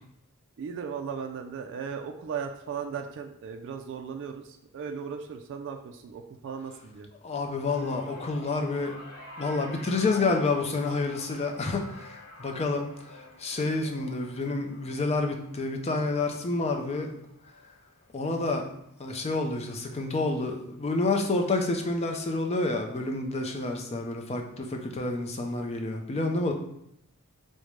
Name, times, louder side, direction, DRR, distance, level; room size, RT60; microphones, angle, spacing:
voice 1, 0.6-7.1 12.4-12.5, right 6 dB, 55° right, 5 dB, 0.3 m, -37 dB
voice 2, 7.2-9.0 9.4-17.1 18.1-18.6 19.0-26.5, left 3 dB, 30° left, 3 dB, 0.4 m, -29 dB
sound 1, 7.6-18.1 18.4-18.8 19.9-20.0, left 1 dB, 85° left, 1.1 m, -47 dB
5.0 x 2.1 x 3.0 m, 0.76 s
head